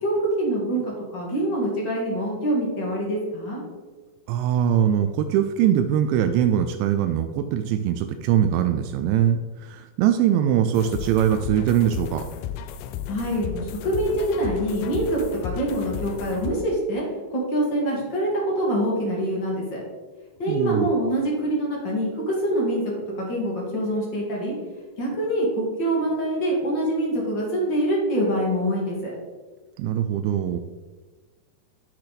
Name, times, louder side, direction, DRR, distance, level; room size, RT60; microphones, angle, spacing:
voice 1, 0.0-3.6 13.1-17.0 17.3-19.8 20.4-24.5 25.0-29.1, right 1 dB, 40° left, -3 dB, 1.7 m, -25 dB
voice 2, 4.3-12.3 20.5-20.9 29.8-30.6, right 10 dB, 85° right, 7 dB, 2.8 m, -22 dB
sound 1, 10.7-16.5, left 9 dB, 80° left, 2.8 m, -34 dB
10.5 x 6.4 x 4.1 m, 1.4 s
omnidirectional pair, 5.2 m